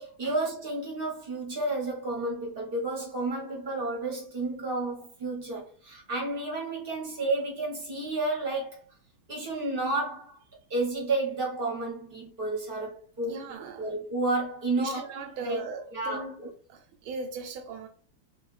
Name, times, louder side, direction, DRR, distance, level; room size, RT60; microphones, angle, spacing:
voice 1, 0.0-8.8 9.3-10.4 10.7-15.6 15.9-16.5, right 2 dB, 35° right, 0.9 m, -31 dB
voice 2, 13.2-13.9 14.8-16.3 16.7-17.9, right 4 dB, 85° right, 1.4 m, -38 dB
3.3 x 3.1 x 3.1 m
omnidirectional pair, 2.1 m